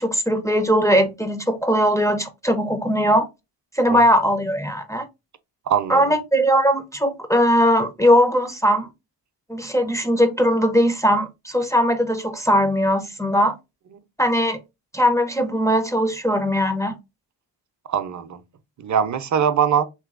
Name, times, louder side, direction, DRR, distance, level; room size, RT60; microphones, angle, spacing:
voice 1, 0.0-3.3 3.7-5.1 5.9-8.9 9.5-13.6 14.2-14.6 14.9-17.0, equal, 5° left, 0.4 m, -19 dB
voice 2, 5.7-6.1 13.9-14.0 17.9-18.4 18.8-19.8, right 8 dB, 40° right, 0.5 m, -22 dB
3.0 x 3.0 x 2.4 m
cardioid pair, 55°, 44 cm